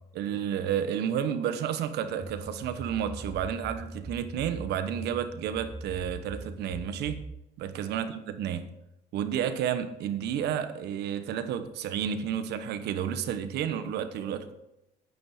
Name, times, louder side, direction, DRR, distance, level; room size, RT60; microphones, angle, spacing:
voice 1, 0.1-7.2 7.6-8.7 9.1-14.5, right 9 dB, 75° right, 1.2 m, -31 dB
sound 1, 2.2-7.4, right 2 dB, 5° right, 0.9 m, -42 dB
9.9 x 9.5 x 5.0 m
cardioid pair, 110°, 17 cm